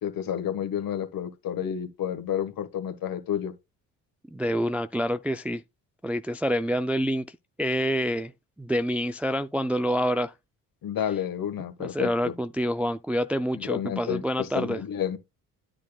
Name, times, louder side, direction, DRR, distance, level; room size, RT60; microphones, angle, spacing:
voice 1, 0.0-3.5 10.8-12.3 13.6-15.2, left 9 dB, 55° left, 1.6 m, -30 dB
voice 2, 4.3-5.6 6.0-8.3 8.6-10.3 11.8-14.8, equal, 5° right, 0.4 m, -27 dB
10.0 x 8.6 x 2.4 m
hypercardioid pair, 65°, 41 cm